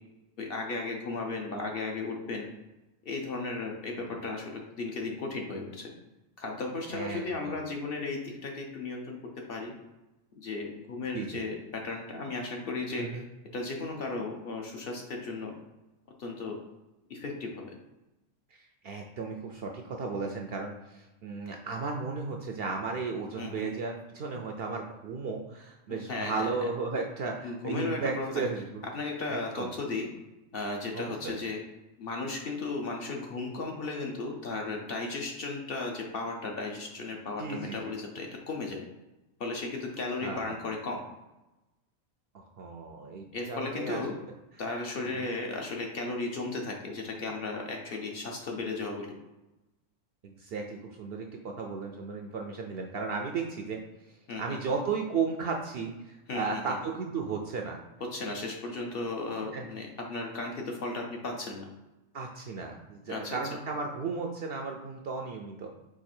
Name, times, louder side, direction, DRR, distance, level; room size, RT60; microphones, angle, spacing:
voice 1, 0.4-2.5 3.0-5.9 6.4-9.2 9.5-9.7 10.4-13.3 13.5-15.5 16.2-16.6 17.1-17.6 23.4-23.7 25.9-26.5 27.4-28.4 28.9-30.1 30.5-31.6 32.0-38.8 39.4-41.0 43.3-44.1 44.6-49.1 54.3-54.6 56.3-56.8 58.0-61.7 63.1-63.4, left 3 dB, 55° left, 1 dB, 0.8 m, -35 dB
voice 2, 6.9-7.6 11.1-11.4 13.0-13.2 18.5-28.8 29.3-29.7 30.9-31.3 37.4-37.8 40.2-40.6 42.3-44.0 45.0-45.3 50.2-53.8 54.4-57.8 59.5-59.7 62.1-65.7, right 4 dB, 65° right, 2 dB, 0.6 m, -35 dB
4.8 x 2.6 x 4.3 m, 1.0 s
omnidirectional pair, 1.3 m